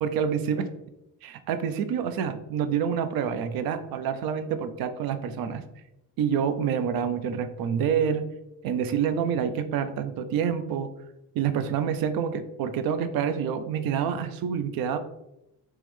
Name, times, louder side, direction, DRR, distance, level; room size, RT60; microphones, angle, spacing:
voice 1, 0.0-0.7 1.2-5.6 6.2-8.2 8.6-10.9 11.3-15.0, right 7 dB, 60° right, 10 dB, 0.5 m, -27 dB
3.6 x 3.0 x 3.1 m, 0.87 s
cardioid pair, 155°, 40 cm